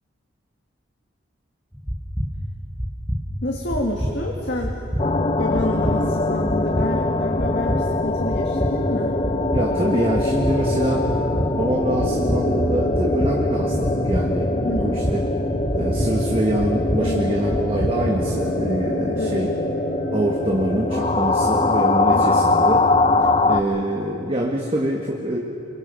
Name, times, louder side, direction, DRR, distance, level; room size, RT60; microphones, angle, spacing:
sound 1, 1.7-18.3, equal, 5° right, 1.1 m, -29 dB
voice 1, 3.4-9.2 14.6-15.0 17.0-17.4 19.1-19.4 22.1-22.4, left 1 dB, 60° left, -1 dB, 2.0 m, -28 dB
sound 2, 5.0-23.6, left 2 dB, 30° left, 0.6 m, -23 dB
voice 2, 9.5-11.1 11.6-15.2 15.7-19.5 20.1-22.8 23.5-25.4, right 1 dB, 30° right, -1 dB, 1.5 m, -25 dB
sound 3, 10.4-24.3, right 1 dB, 75° right, 4.9 m, -32 dB
27.5 x 23.5 x 5.3 m, 2.8 s
head